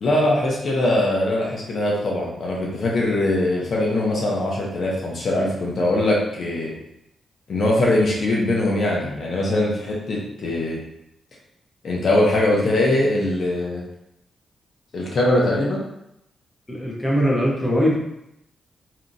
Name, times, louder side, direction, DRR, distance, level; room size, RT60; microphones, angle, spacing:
voice 1, 0.0-6.7 7.5-10.8 11.8-13.8 14.9-15.8, left 1 dB, 60° left, -3 dB, 0.7 m, -21 dB
voice 2, 16.7-18.0, equal, 10° left, -4 dB, 0.8 m, -21 dB
2.8 x 2.5 x 2.6 m, 0.81 s
cardioid pair, 90°, 0 cm